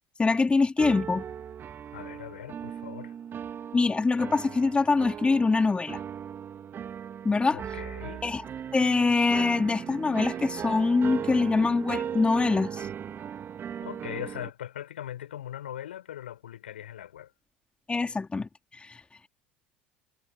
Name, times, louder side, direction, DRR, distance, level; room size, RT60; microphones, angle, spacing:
voice 1, 0.2-1.2 3.7-6.0 7.2-7.6 8.2-8.4 8.7-12.9 17.9-18.5 18.8-19.0, left 3 dB, 20° left, 4.2 m, -24 dB
sound 1, 0.8-14.5, right 8 dB, 40° right, 3.8 m, -38 dB
voice 2, 1.9-3.1 7.5-8.3 13.8-17.3, left 11 dB, 85° left, 7.7 m, -40 dB
hypercardioid pair, 75°, 6 cm